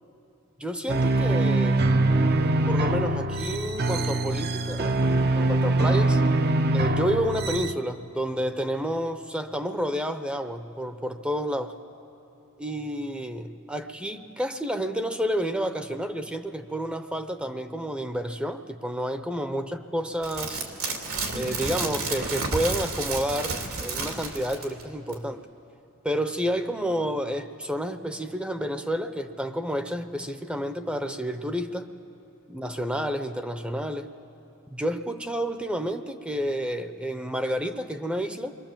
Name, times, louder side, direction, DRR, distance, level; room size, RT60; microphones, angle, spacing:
voice 1, 0.6-1.9 2.7-6.2 6.7-11.8 12.6-20.7 21.3-25.5 26.0-31.9 32.5-34.1 34.7-38.6, equal, 5° right, 8 dB, 0.7 m, -30 dB
sound 1, 0.9-7.7, right 2 dB, 50° right, 0.7 m, -23 dB
sound 2, 20.2-24.8 25.1-25.2, right 3 dB, 85° right, 2.9 m, -31 dB
28.0 x 23.5 x 7.4 m, 2.8 s
head